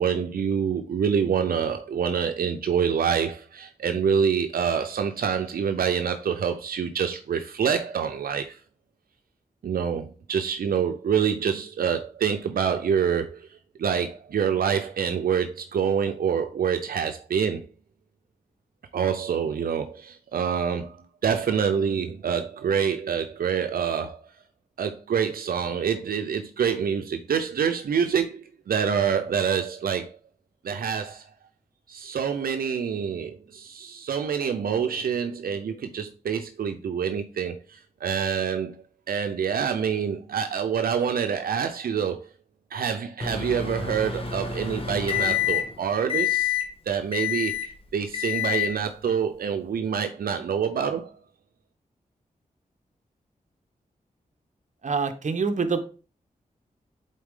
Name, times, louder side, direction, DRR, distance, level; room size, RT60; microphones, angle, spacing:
voice 1, 0.0-8.6 9.6-13.5 13.8-17.6 18.9-21.0 21.2-24.2 24.8-28.4 28.7-30.1 30.6-31.2 31.9-38.7 39.1-42.2 42.7-46.6 46.9-47.6 47.9-51.1, right 7 dB, 85° right, 0.6 m, -26 dB
Microwave oven, 43.2-45.8 46.1-46.7 47.1-47.7 48.1-48.8, left 10 dB, 40° left, 1.6 m, -27 dB
voice 2, 54.8-55.8, right 4 dB, 55° right, 0.9 m, -25 dB
8.3 x 4.1 x 3.7 m
cardioid pair, 60°, 15 cm